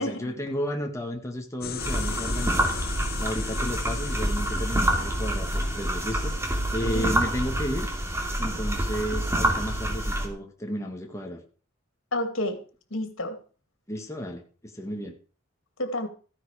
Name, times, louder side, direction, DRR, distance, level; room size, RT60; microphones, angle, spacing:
voice 1, 0.0-2.7 3.2-7.9 8.4-11.4 13.9-15.2, equal, 15° left, 2 dB, 1.8 m, -33 dB
sound 1, 1.6-8.1, left 6 dB, 50° left, 0.9 m, -39 dB
sound 2, 1.8-10.3, right 1 dB, 15° right, 2.7 m, -27 dB
voice 2, 6.8-7.1 12.1-12.6 12.9-13.4 15.8-16.1, left 1 dB, 75° left, 8 dB, 2.5 m, -30 dB
15.0 x 9.8 x 5.0 m, 0.38 s
head